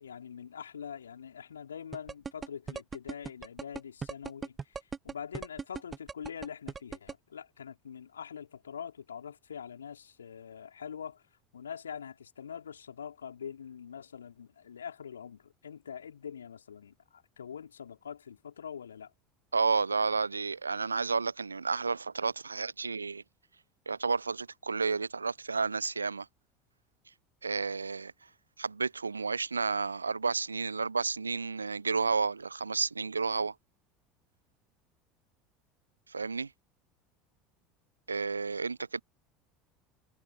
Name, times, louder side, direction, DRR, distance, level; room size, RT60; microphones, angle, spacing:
voice 1, 0.0-4.8 5.0-11.2 11.5-19.1, left 7 dB, 75° left, 4.1 m, -44 dB
sound 1, 1.9-7.1, right 5 dB, 25° right, 0.8 m, -38 dB
voice 2, 19.5-23.2 23.9-26.3 27.4-28.1 28.6-33.5 36.1-36.5 38.1-39.0, right 4 dB, 80° right, 0.4 m, -31 dB
figure-of-eight pair, 70°, 0 cm